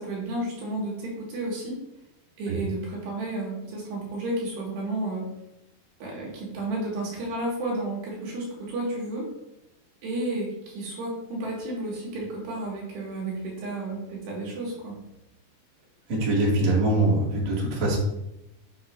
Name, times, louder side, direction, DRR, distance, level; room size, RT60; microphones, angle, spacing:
voice 1, 0.0-1.8 2.4-5.3 6.0-9.3 10.0-15.0, right 2 dB, 75° right, -4 dB, 4.1 m, -32 dB
voice 2, 16.1-18.0, right 2 dB, 45° right, -5 dB, 3.1 m, -23 dB
7.7 x 7.5 x 2.7 m, 0.88 s
omnidirectional pair, 4.9 m